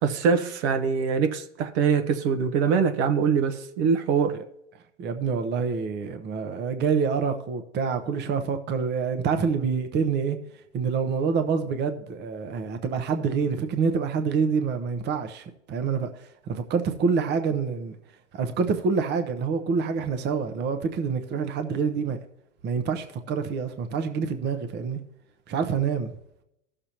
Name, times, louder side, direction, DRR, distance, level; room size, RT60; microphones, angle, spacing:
voice 1, 0.0-4.3, right 6 dB, 65° right, 1.1 m, -23 dB
voice 2, 5.0-10.4 10.7-17.9 18.3-22.2 22.6-25.0 25.5-26.1, right 5 dB, 30° right, 0.8 m, -27 dB
16.0 x 6.8 x 2.9 m
hypercardioid pair, 100°, 36 cm